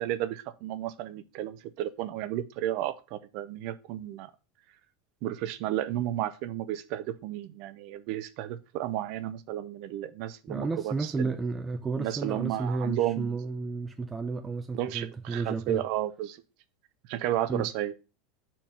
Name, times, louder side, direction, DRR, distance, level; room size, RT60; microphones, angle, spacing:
voice 1, 0.0-4.3 5.2-11.3 12.0-13.4 14.7-16.4 17.1-17.9, right 12 dB, 60° right, 0.7 m, -33 dB
voice 2, 10.5-15.8 17.5-17.7, right 4 dB, 20° right, 0.5 m, -32 dB
4.5 x 4.5 x 5.7 m
hypercardioid pair, 95°, 0 cm